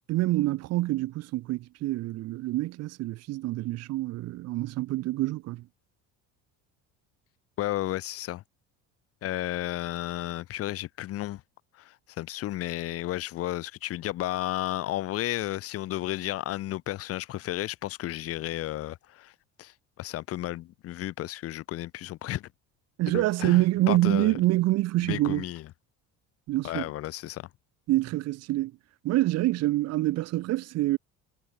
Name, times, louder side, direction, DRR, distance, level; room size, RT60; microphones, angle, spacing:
voice 1, 0.1-5.7 23.0-25.4 26.5-26.9 27.9-28.7 29.0-31.0, right 17 dB, 50° right, 4.3 m, -26 dB
voice 2, 7.6-8.4 9.2-11.4 11.8-19.3 19.6-22.5 23.1-24.4 25.0-25.6 26.6-27.5, left 15 dB, 45° left, 5.6 m, -33 dB
cardioid pair, 170°, 32 cm